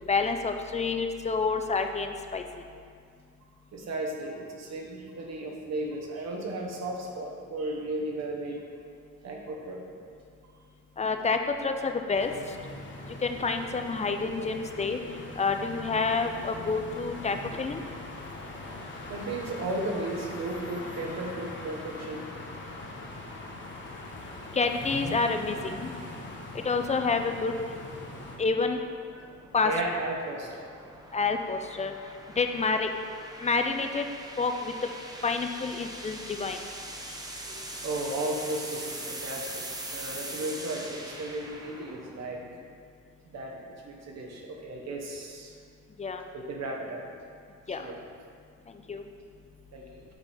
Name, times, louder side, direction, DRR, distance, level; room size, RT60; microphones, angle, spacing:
voice 1, 0.1-2.4 11.0-12.3 13.2-15.0 15.4-17.8 24.5-25.9 26.6-27.5 28.4-28.8 29.5-29.7 31.1-31.9 32.4-32.9 33.4-34.0 34.4-34.7 35.2-36.6 46.0-46.2 47.7-47.8 48.9-49.0, left 4 dB, 25° left, 6 dB, 0.4 m, -28 dB
voice 2, 3.7-8.6 9.2-9.8 19.1-22.3 29.1-29.3 29.6-30.7 35.4-35.6 37.1-37.2 37.5-37.6 37.8-39.7 39.9-42.4 43.2-43.6 43.8-45.6 46.3-47.0 47.7-48.0 49.7-49.8, right 2 dB, 60° right, 0 dB, 1.1 m, -35 dB
sound 1, 12.1-28.4, left 2 dB, 40° left, 1.0 m, -41 dB
sound 2, 26.4-42.6, right 1 dB, 15° right, 0.7 m, -43 dB
8.2 x 4.0 x 3.4 m, 2.2 s
cardioid pair, 90°, 30 cm